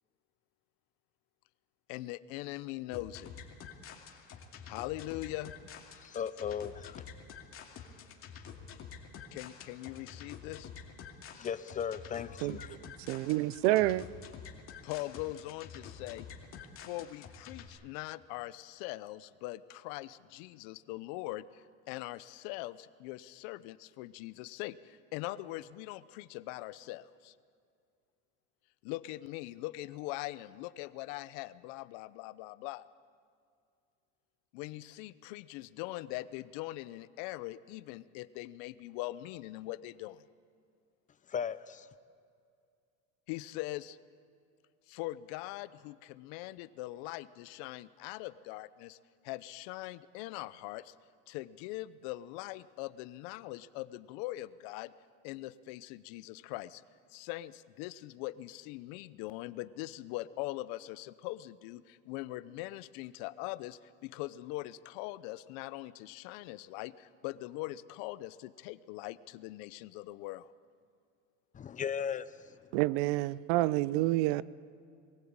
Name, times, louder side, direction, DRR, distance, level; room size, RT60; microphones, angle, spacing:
voice 1, 1.9-3.3 4.7-5.5 9.3-10.7 14.8-16.3 16.8-27.3 28.8-32.8 34.5-40.2 43.3-44.0 44.9-49.0 49.2-50.9 51.3-54.9 55.2-56.8 57.1-70.5, left 17 dB, 75° left, 0.8 m, -42 dB
sound 1, 2.9-17.7, left 7 dB, 40° left, 2.5 m, -49 dB
voice 2, 6.0-7.0 11.3-12.8 41.3-41.9 71.5-72.3, left 7 dB, 25° left, 0.7 m, -36 dB
voice 3, 12.4-12.8 13.1-14.0 72.7-74.4, right 17 dB, 80° right, 0.7 m, -28 dB
22.5 x 15.5 x 8.8 m
supercardioid pair, 130°, 32 cm